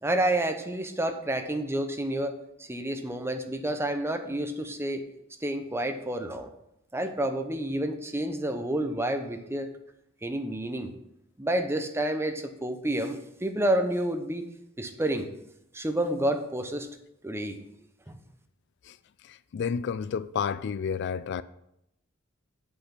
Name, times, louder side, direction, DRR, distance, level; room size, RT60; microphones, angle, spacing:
voice 1, 0.0-5.0 5.4-6.5 6.9-9.7 10.2-10.9 11.4-14.4 14.8-15.3 15.7-16.9 17.2-17.6 18.1-18.2, right 1 dB, 10° right, 0.8 m, -29 dB
voice 2, 19.2-21.4, left 6 dB, 60° left, 0.3 m, -31 dB
8.3 x 5.5 x 5.9 m
head